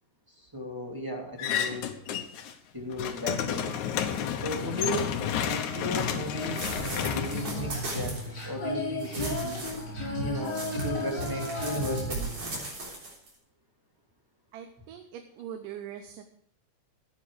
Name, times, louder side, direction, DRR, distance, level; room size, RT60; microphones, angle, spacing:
voice 1, 0.4-1.9 2.7-3.7 4.2-5.2 5.4-9.7 10.2-12.3, equal, 5° right, -2 dB, 2.1 m, -36 dB
sound 1, 1.4-2.5 2.8-8.2, left 8 dB, 70° left, 2.3 m, -31 dB
sound 2, 5.9-6.0 6.5-8.4 9.0-9.8 10.4-13.3, right 2 dB, 45° right, 4.4 m, -38 dB
Female singing, 7.3-12.7, left 1 dB, 30° left, 6.4 m, -33 dB
voice 2, 14.5-16.2, right 9 dB, 85° right, 6 dB, 2.5 m, -42 dB
13.5 x 9.6 x 4.9 m, 0.70 s
omnidirectional pair, 3.7 m